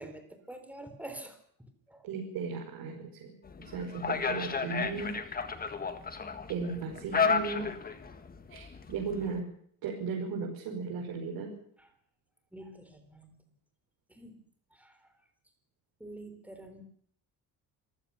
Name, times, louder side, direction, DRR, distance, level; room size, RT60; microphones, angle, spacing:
voice 1, 0.0-2.1 11.8-11.9 12.5-13.4 14.1-14.4 14.7-15.1 16.0-16.8, right 1 dB, 5° right, 7 dB, 3.8 m, -47 dB
voice 2, 2.0-3.3 3.6-5.1 6.5-7.7 8.5-9.4 9.8-11.5, right 5 dB, 75° right, -2 dB, 5.5 m, -36 dB
sound 1, 3.4-9.4, left 5 dB, 25° left, 1.7 m, -33 dB
26.5 x 15.5 x 7.0 m, 0.62 s
cardioid pair, 165°, 36 cm